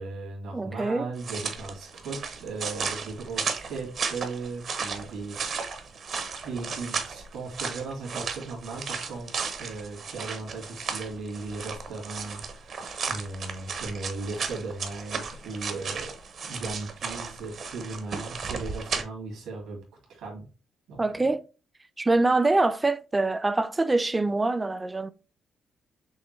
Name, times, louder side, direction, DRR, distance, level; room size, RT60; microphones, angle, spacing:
voice 1, 0.0-5.8 6.4-9.3 9.6-16.1 16.5-19.8 20.1-20.5 20.9-21.3, right 3 dB, 85° right, 2.2 m, -37 dB
voice 2, 0.5-1.1 21.0-21.4 22.0-25.1, right 2 dB, 20° right, 0.4 m, -24 dB
sound 1, 1.2-19.0, right 5 dB, 55° right, 0.8 m, -35 dB
6.2 x 2.2 x 3.1 m
cardioid pair, 90°, 0 cm